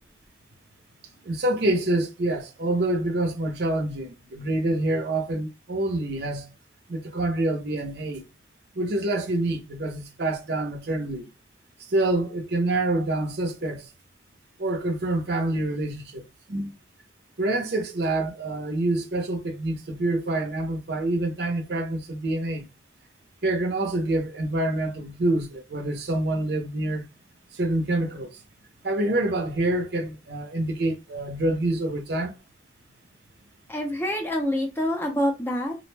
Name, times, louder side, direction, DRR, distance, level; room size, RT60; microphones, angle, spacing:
voice 1, 1.3-6.5 6.9-8.2 8.8-11.3 11.9-13.9 14.6-16.2 16.5-16.7 17.4-22.6 23.4-27.1 27.5-28.3 28.8-32.3, right 2 dB, 60° right, 0.6 m, -26 dB
voice 2, 33.7-35.8, equal, 10° left, 0.5 m, -26 dB
2.4 x 2.1 x 3.2 m
head